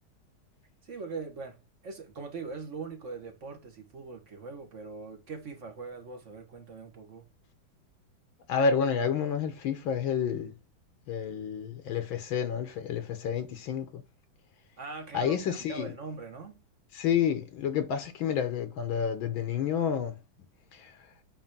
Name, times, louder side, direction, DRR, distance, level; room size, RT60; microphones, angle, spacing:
voice 1, 0.8-7.3 14.8-16.6, right 4 dB, 40° right, 1.6 m, -41 dB
voice 2, 8.5-10.5 11.1-14.0 15.1-15.9 16.9-20.2 20.8-20.9, left 7 dB, 75° left, 1.7 m, -29 dB
8.9 x 3.3 x 6.0 m
omnidirectional pair, 2.3 m